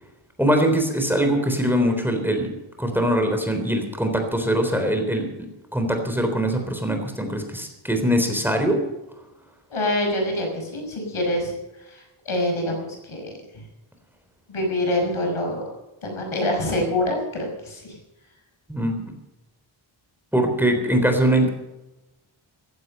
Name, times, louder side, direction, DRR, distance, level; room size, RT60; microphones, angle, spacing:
voice 1, 0.4-2.5 2.8-8.8 18.7-18.9 20.3-21.5, right 1 dB, 5° right, 4 dB, 3.6 m, -22 dB
voice 2, 9.7-11.5 11.9-13.6 14.5-15.6 16.0-18.0, left 1 dB, 80° left, 2 dB, 6.1 m, -26 dB
15.5 x 15.5 x 5.5 m, 0.99 s
wide cardioid pair, 125°, 48 cm